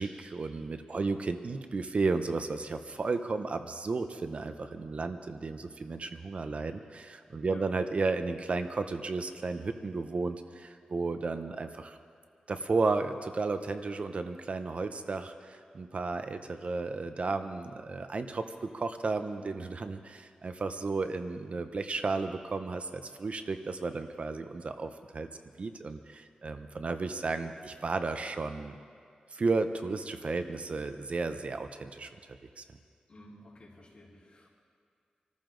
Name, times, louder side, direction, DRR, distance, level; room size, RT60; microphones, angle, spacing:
voice 1, 0.0-12.0 12.5-25.3 25.6-28.8 29.3-32.1 32.6-32.7, right 3 dB, 50° right, 8 dB, 0.7 m, -33 dB
voice 2, 0.9-1.2 7.4-7.7 33.1-34.5, left 1 dB, 45° left, -6 dB, 4.6 m, -52 dB
26.0 x 13.5 x 3.9 m, 2.2 s
wide cardioid pair, 105°, 3 cm